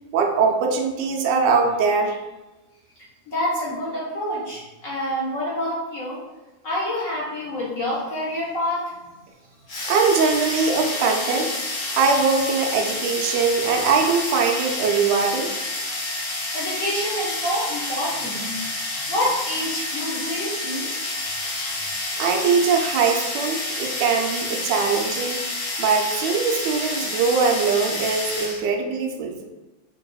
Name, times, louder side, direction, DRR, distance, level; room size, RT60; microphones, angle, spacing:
voice 1, 0.1-2.2 9.8-11.5 12.0-15.5 22.2-25.4 25.8-29.4, right 5 dB, 80° right, 2 dB, 1.0 m, -21 dB
voice 2, 3.3-6.2 6.6-9.0 16.5-18.6 19.1-21.2, equal, 55° left, -7 dB, 1.0 m, -27 dB
sound 1, 9.7-28.6, left 2 dB, 75° left, 1.9 m, -29 dB
4.8 x 2.7 x 2.3 m, 1.1 s
omnidirectional pair, 2.4 m